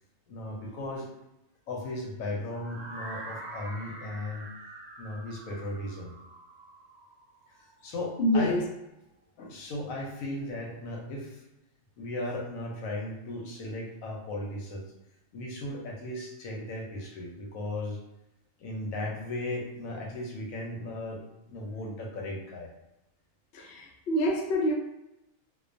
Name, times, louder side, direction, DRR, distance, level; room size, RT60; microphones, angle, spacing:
voice 1, 0.3-1.1 1.7-4.4 5.0-6.1 7.5-8.5 9.4-11.4 12.0-14.8 15.3-18.0 18.6-22.7, left 1 dB, 85° left, -1 dB, 1.0 m, -36 dB
sound 1, 2.5-8.4, right 2 dB, 75° right, 1.0 m, -45 dB
voice 2, 8.2-8.7 23.5-24.7, equal, 65° left, 0 dB, 0.6 m, -26 dB
2.4 x 2.2 x 2.5 m, 0.89 s
omnidirectional pair, 1.4 m